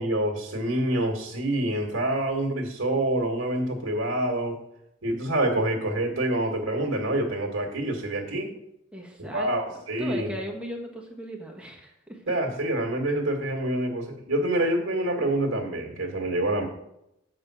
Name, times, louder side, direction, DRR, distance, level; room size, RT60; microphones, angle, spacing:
voice 1, 0.0-4.5 5.0-8.5 9.2-10.3 12.3-16.6, right 1 dB, 75° right, 0 dB, 1.7 m, -26 dB
voice 2, 8.9-12.3, equal, 5° right, 0 dB, 1.3 m, -38 dB
7.4 x 5.1 x 6.1 m, 0.83 s
head